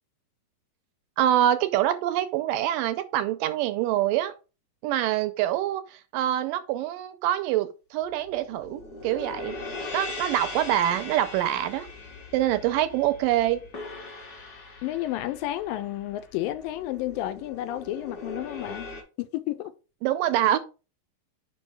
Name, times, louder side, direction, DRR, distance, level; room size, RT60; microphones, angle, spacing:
voice 1, 1.2-4.3 4.8-9.6 9.9-11.9 12.3-13.6 20.0-20.6, right 12 dB, 80° right, 2.1 m, -25 dB
sound 1, 8.1-19.0, left 3 dB, 35° left, 1.7 m, -40 dB
voice 2, 14.8-18.9 19.2-19.7, left 14 dB, 85° left, 2.3 m, -31 dB
5.5 x 5.4 x 4.7 m
omnidirectional pair, 4.1 m